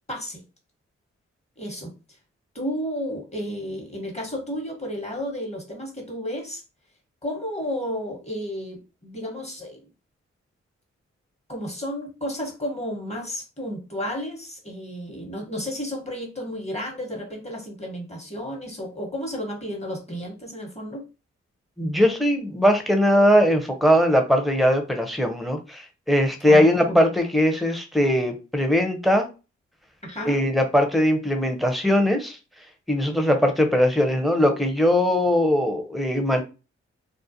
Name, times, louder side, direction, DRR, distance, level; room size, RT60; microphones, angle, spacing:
voice 1, 0.1-0.4 1.6-1.9 2.5-6.6 7.2-9.8 11.5-21.1 26.5-27.0 30.0-30.4, equal, 20° left, 1 dB, 1.2 m, -32 dB
voice 2, 21.8-29.3 30.2-32.4 32.9-36.4, equal, ahead, 5 dB, 0.7 m, -20 dB
2.4 x 2.1 x 2.8 m, 0.30 s
supercardioid pair, 40°, 29 cm